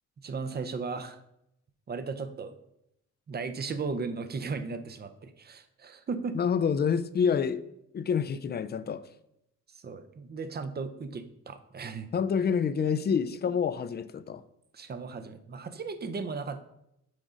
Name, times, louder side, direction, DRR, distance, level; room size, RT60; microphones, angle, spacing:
voice 1, 0.2-1.2 1.9-2.6 3.3-6.4 9.8-12.1 14.7-16.7, right 4 dB, 30° right, 10 dB, 0.6 m, -36 dB
voice 2, 6.3-7.6 7.9-9.1 12.1-14.4, left 6 dB, 35° left, 14 dB, 0.4 m, -27 dB
6.2 x 3.8 x 5.0 m, 0.81 s
cardioid pair, 100°, 31 cm